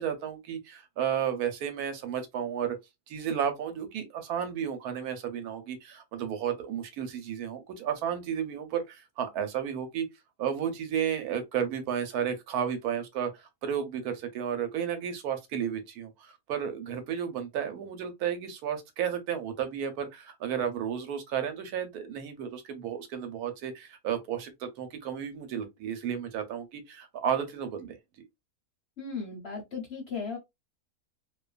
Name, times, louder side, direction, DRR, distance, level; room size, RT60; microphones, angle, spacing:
voice 1, 0.0-2.8 3.1-10.1 10.4-28.0, right 8 dB, 80° right, 1.1 m, -33 dB
voice 2, 29.0-30.4, left 5 dB, 55° left, 0.8 m, -36 dB
2.5 x 2.3 x 2.3 m
omnidirectional pair, 1.7 m